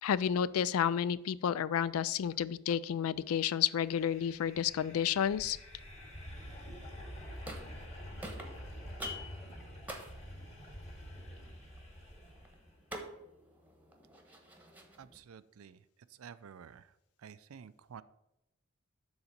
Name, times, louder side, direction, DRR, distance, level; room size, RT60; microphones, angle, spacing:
voice 1, 0.0-5.6, left 8 dB, 75° left, 18 dB, 0.3 m, -31 dB
sound 1, 3.6-12.7, equal, 30° left, 2.2 m, -47 dB
sound 2, 7.1-7.9 8.2-15.2, equal, 10° right, 1.1 m, -48 dB
voice 2, 15.0-15.8 16.2-16.9 17.2-18.0, right 7 dB, 75° right, 16 dB, 0.4 m, -51 dB
7.1 x 4.0 x 6.5 m, 0.86 s
head